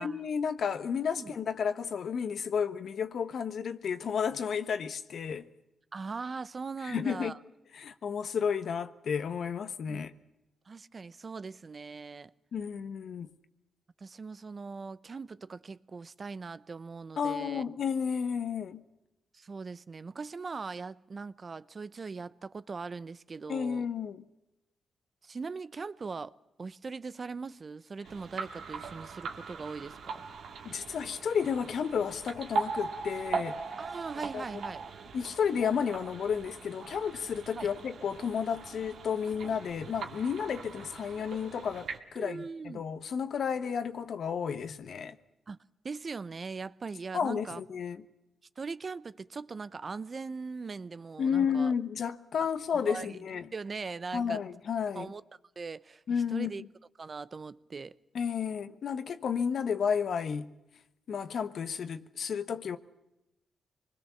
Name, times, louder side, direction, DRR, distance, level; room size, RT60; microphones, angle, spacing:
voice 1, 0.0-5.5 6.8-7.4 7.7-10.1 12.5-13.3 17.2-18.8 23.5-24.2 30.6-33.6 34.3-34.4 35.1-45.2 47.1-48.0 51.2-53.5 54.1-55.1 56.1-56.5 58.1-60.5 61.1-62.8, left 7 dB, 70° left, 1.2 m, -32 dB
voice 2, 5.9-7.4 9.9-10.0 10.7-12.3 14.0-17.6 19.3-23.9 25.2-26.3 26.6-30.3 33.8-34.9 37.5-37.7 42.2-42.8 45.5-45.6 45.8-47.6 48.6-51.7 52.7-53.1 53.5-54.4 54.9-55.2 55.6-56.0 56.3-56.6 57.0-58.0, right 4 dB, 45° right, 0.8 m, -40 dB
sound 1, 28.0-42.0, right 4 dB, 75° right, 2.0 m, -40 dB
25.0 x 20.5 x 7.1 m
cardioid pair, 60°, 0 cm